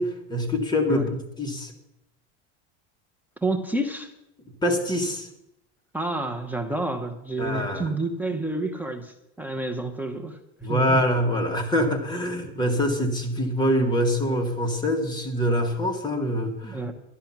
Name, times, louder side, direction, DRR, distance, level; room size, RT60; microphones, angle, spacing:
voice 1, 0.0-1.7 4.6-5.3 7.4-7.9 10.6-16.8, equal, 15° left, 2 dB, 2.0 m, -25 dB
voice 2, 3.4-4.1 5.9-10.4 10.7-11.0 16.6-16.9, right 2 dB, 5° right, 4 dB, 0.9 m, -29 dB
12.0 x 11.0 x 6.0 m, 0.84 s
supercardioid pair, 135°, 33 cm